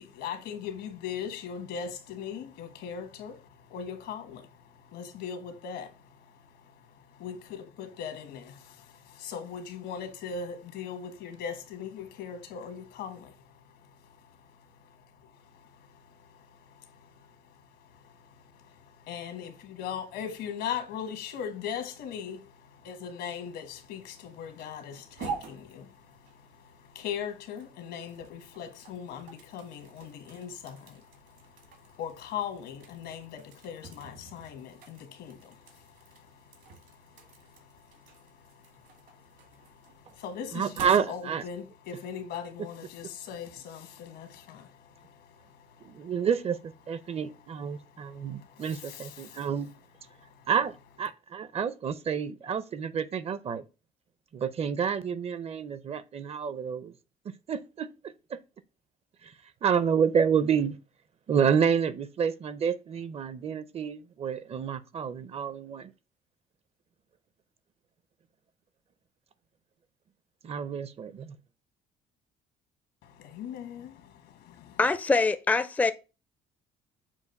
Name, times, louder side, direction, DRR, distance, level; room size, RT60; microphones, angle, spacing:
voice 1, 0.0-46.3 46.8-50.7 51.0-51.1 73.0-74.8, left 7 dB, 80° left, 1.3 m, -41 dB
sound 1, 23.6-41.6, right 5 dB, 75° right, 2.0 m, -48 dB
voice 2, 40.6-41.4 46.0-46.6 46.9-49.7 50.5-50.7 51.0-53.6 54.3-56.9 57.5-57.9 59.6-60.7 61.3-65.8 70.5-71.2, right 7 dB, 40° right, 0.5 m, -28 dB
voice 3, 74.8-75.9, left 3 dB, 10° left, 0.4 m, -24 dB
7.2 x 2.5 x 5.2 m
cardioid pair, 110°, 17 cm